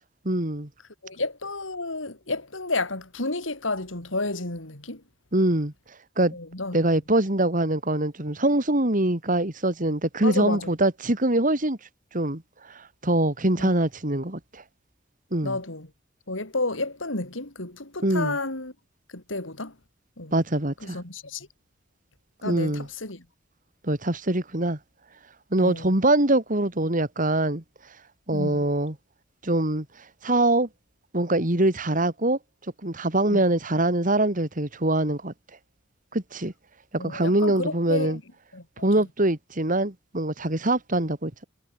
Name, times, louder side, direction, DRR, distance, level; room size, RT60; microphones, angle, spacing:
voice 1, 0.2-0.7 5.3-5.7 6.2-6.3 6.7-11.8 12.1-12.4 13.0-14.6 15.3-15.6 18.0-18.4 20.3-21.0 22.4-22.9 23.8-24.8 25.5-27.6 28.3-28.9 29.4-29.8 30.2-30.7 31.1-32.4 32.8-35.3 36.1-36.5 36.9-38.2 38.8-41.4, right 1 dB, 45° right, 2.9 m, -23 dB
voice 2, 1.0-5.0 6.3-6.8 10.2-10.7 13.6-13.7 15.4-15.9 16.3-18.7 19.1-19.8 20.2-20.3 20.8-21.5 22.4-23.2 25.6-26.0 28.3-28.6 33.3-33.4 37.0-38.2 38.5-38.6, left 2 dB, 85° left, 4.6 m, -31 dB
head